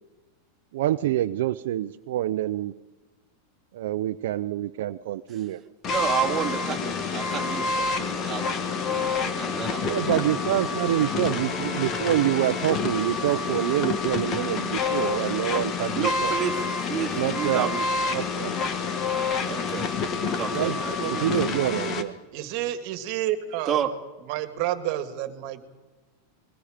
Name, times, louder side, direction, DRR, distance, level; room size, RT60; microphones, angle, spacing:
voice 1, 0.7-2.7 3.7-5.6 9.8-16.3 17.2-17.7 18.1-18.5 20.5-22.1, right 13 dB, 70° right, 10 dB, 0.6 m, -26 dB
sound 1, 5.8-22.0, left 4 dB, 30° left, 1.6 m, -28 dB
voice 2, 5.9-10.0 15.9-17.9 19.5-19.9 20.2-21.3 23.7-23.9, right 8 dB, 15° right, 1 dB, 2.5 m, -31 dB
voice 3, 22.3-23.8 24.3-25.6, right 13 dB, 45° right, 9 dB, 2.0 m, -29 dB
28.0 x 21.5 x 5.1 m, 1.2 s
supercardioid pair, 155°, 0 cm